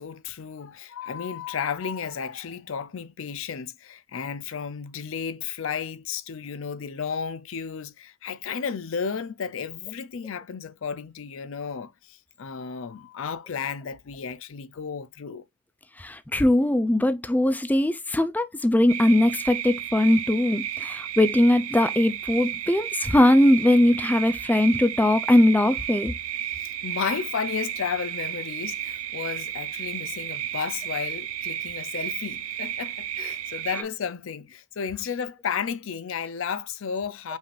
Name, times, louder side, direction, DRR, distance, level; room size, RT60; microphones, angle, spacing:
voice 1, 0.0-15.4 26.5-37.4, left 6 dB, 65° left, 0.5 m, -33 dB
voice 2, 16.0-26.1, left 1 dB, 10° left, 0.3 m, -20 dB
sound 1, 18.9-33.8, right 11 dB, 90° right, 0.5 m, -33 dB
5.4 x 2.5 x 3.1 m
head